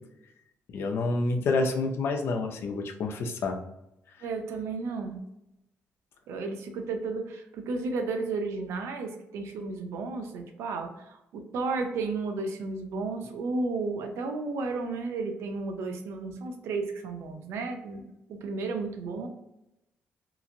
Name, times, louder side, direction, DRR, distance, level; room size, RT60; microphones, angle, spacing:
voice 1, 0.7-3.6, left 3 dB, 65° left, 4 dB, 0.5 m, -28 dB
voice 2, 4.2-5.2 6.3-19.3, right 3 dB, 90° right, 5 dB, 0.5 m, -33 dB
2.9 x 2.5 x 2.6 m, 0.86 s
cardioid pair, 105°, 4 cm